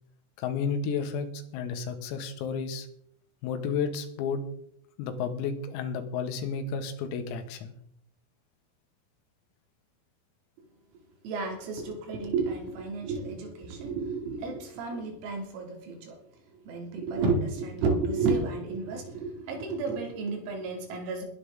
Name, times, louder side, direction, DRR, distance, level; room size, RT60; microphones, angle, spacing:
voice 1, 0.4-2.9 3.4-4.4 5.0-7.7, left 6 dB, 85° left, 7 dB, 4.3 m, -32 dB
voice 2, 11.2-16.2 16.7-21.3, right 4 dB, 85° right, 2 dB, 5.5 m, -31 dB
21.0 x 9.8 x 3.8 m, 0.67 s
omnidirectional pair, 6.0 m